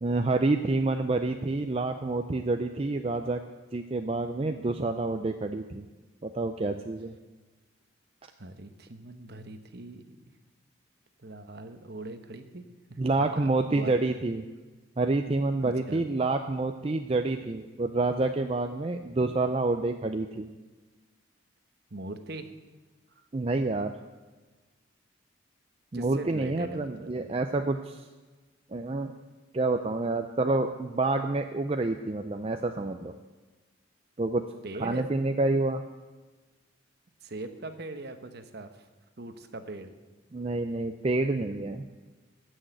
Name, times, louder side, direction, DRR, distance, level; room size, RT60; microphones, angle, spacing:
voice 1, 0.0-3.4 3.7-5.8 6.2-7.2 13.0-14.4 15.0-20.5 23.3-23.9 25.9-28.0 28.7-29.1 29.5-33.1 34.2-34.4 34.8-35.8 40.3-41.8, right 2 dB, 30° right, 6 dB, 0.4 m, -28 dB
voice 2, 8.4-10.2 11.2-14.1 15.6-16.0 21.9-22.5 25.9-27.3 34.6-35.0 37.2-38.9 39.2-39.9, right 2 dB, 50° right, 8 dB, 1.0 m, -41 dB
15.5 x 6.4 x 7.8 m, 1.3 s
head